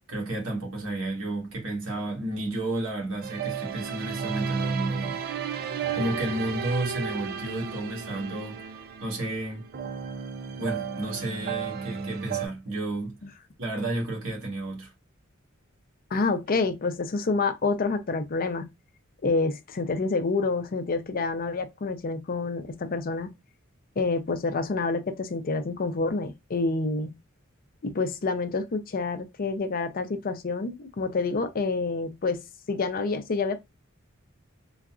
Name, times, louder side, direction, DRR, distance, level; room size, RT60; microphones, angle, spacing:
voice 1, 0.0-5.2 6.0-9.6 10.6-13.2 13.6-14.9, right 1 dB, 85° right, 1.7 m, -32 dB
sound 1, 3.2-12.5, right 6 dB, 50° right, 0.4 m, -33 dB
voice 2, 16.1-18.7 19.2-23.3 24.0-27.1 27.8-32.4 32.7-33.6, left 3 dB, 45° left, 0.5 m, -28 dB
3.9 x 2.3 x 2.4 m
head